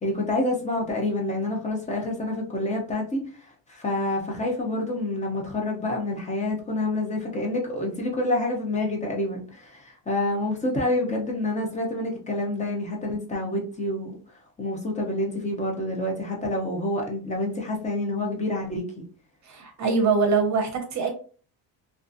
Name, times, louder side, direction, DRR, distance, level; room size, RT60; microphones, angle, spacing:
voice 1, 0.0-14.2 14.6-19.0, left 1 dB, 15° left, 0.5 m, -28 dB
voice 2, 19.5-21.1, right 4 dB, 40° right, 0.7 m, -23 dB
2.4 x 2.4 x 2.5 m
cardioid pair, 155°, 44 cm